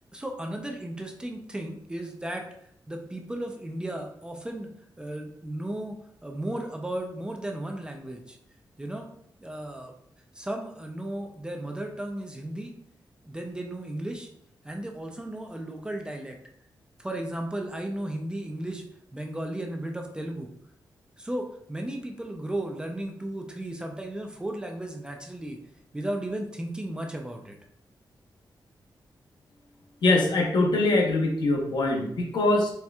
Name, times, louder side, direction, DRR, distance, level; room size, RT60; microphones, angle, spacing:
voice 1, 0.1-2.5 2.9-4.7 5.0-6.0 6.2-8.4 8.8-9.1 9.4-9.9 10.3-12.7 13.2-14.3 14.6-16.4 17.0-18.8 19.1-20.5 21.2-25.6 25.9-27.6, right 1 dB, 10° right, 3 dB, 0.4 m, -35 dB
voice 2, 30.0-32.7, left 2 dB, 70° left, 1 dB, 0.8 m, -23 dB
4.2 x 3.3 x 2.3 m, 0.69 s
wide cardioid pair, 160°, 8 cm